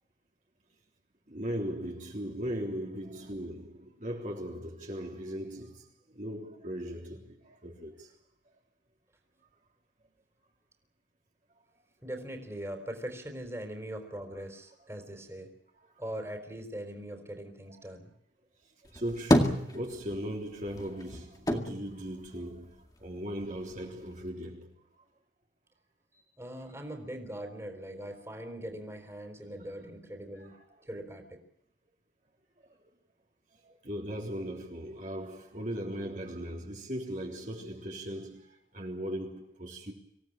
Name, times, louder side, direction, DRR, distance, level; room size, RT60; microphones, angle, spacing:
voice 1, 1.3-5.8 6.1-8.1 18.9-24.7 30.3-30.6 33.8-38.5 38.7-39.9, equal, 45° right, 3.6 m, -38 dB
voice 2, 12.0-15.5 16.0-18.1 26.4-30.5 30.8-31.4, right 1 dB, 15° right, 4.0 m, -41 dB
sound 1, 18.8-20.3 20.7-23.0 23.4-24.3, equal, 20° left, 2.1 m, -29 dB
26.0 x 17.5 x 8.9 m
head